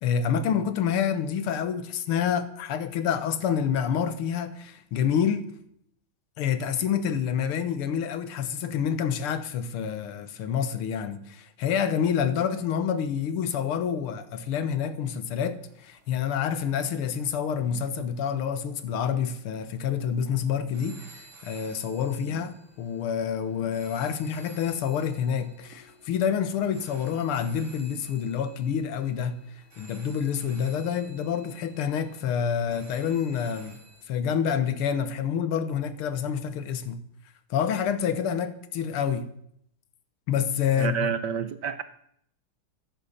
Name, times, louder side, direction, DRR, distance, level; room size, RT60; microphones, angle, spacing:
voice 1, 0.0-5.5 6.4-29.4 29.8-33.8 34.1-37.0 37.5-39.3 40.3-41.1, left 8 dB, 90° left, 2.0 m, -28 dB
sound 1, 15.6-34.0, right 3 dB, 35° right, 2.8 m, -54 dB
voice 2, 40.8-41.8, right 7 dB, 65° right, 1.2 m, -29 dB
14.0 x 10.5 x 7.2 m
omnidirectional pair, 2.4 m